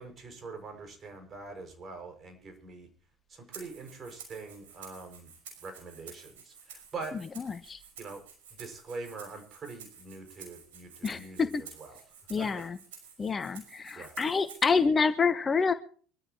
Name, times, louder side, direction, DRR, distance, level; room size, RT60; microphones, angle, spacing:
voice 1, 0.0-2.9 3.3-5.3 5.6-7.2 8.0-8.2 8.5-12.0 12.4-12.7 13.9-14.1, right 3 dB, 35° right, 6 dB, 6.0 m, -44 dB
Rattle (instrument), 3.5-14.8, right 6 dB, 70° right, 5.9 m, -51 dB
voice 2, 7.4-7.8 11.0-11.6 12.3-12.8 13.2-15.7, left 5 dB, 25° left, 12 dB, 1.1 m, -27 dB
24.5 x 13.0 x 3.0 m, 0.43 s
figure-of-eight pair, 65°, 0 cm